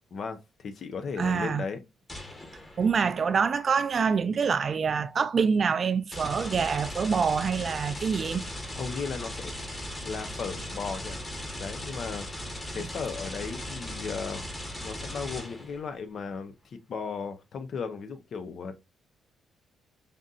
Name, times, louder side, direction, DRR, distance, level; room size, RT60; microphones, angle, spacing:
voice 1, 0.1-1.8 8.7-9.6 10.0-11.1 11.6-12.3 12.7-14.4 14.8-18.8, left 5 dB, 55° left, 0.7 m, -36 dB
voice 2, 1.2-1.7 2.8-8.4 12.7-12.9, right 6 dB, 45° right, 0.4 m, -26 dB
sound 1, 2.1-3.1 6.1-15.9, left 1 dB, 20° left, 1.1 m, -38 dB
5.1 x 2.7 x 2.4 m
cardioid pair, 90°, 0 cm